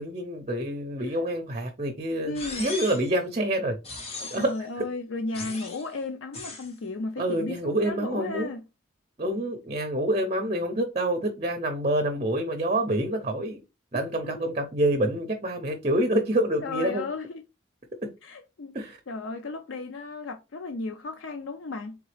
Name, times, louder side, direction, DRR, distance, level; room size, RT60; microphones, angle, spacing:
voice 1, 0.0-3.8 4.3-4.9 7.2-8.5 9.2-13.6 13.9-17.0 18.7-19.0, right 1 dB, 30° right, 0.6 m, -27 dB
voice 2, 2.2-2.7 4.2-8.6 14.2-14.5 16.6-17.4 18.2-22.0, left 3 dB, 75° left, 0.5 m, -35 dB
sound 1, 2.3-3.1 3.8-4.6 5.3-5.9 6.3-6.7, left 3 dB, 30° left, 0.9 m, -38 dB
3.9 x 3.6 x 3.2 m
head